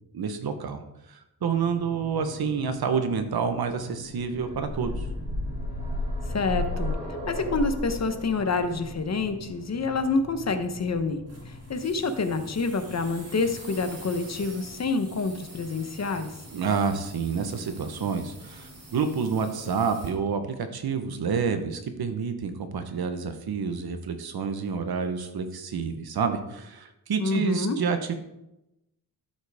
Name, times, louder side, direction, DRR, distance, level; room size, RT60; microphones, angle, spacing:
voice 1, 0.1-0.8 1.1-5.1 16.5-28.1, right 6 dB, 65° right, 8 dB, 1.2 m, -28 dB
sound 1, 1.4-20.2, left 2 dB, 75° left, 3.2 m, -46 dB
sound 2, 4.1-11.9 13.1-13.2 13.5-13.6, left 1 dB, 15° right, 3.3 m, -34 dB
voice 2, 6.3-6.9 7.3-16.3 27.2-27.8, left 3 dB, 40° left, 8 dB, 0.9 m, -27 dB
sound 3, 11.3-20.1, right 2 dB, 40° right, 2.8 m, -48 dB
12.0 x 7.9 x 3.6 m, 0.90 s
wide cardioid pair, 140°, 40 cm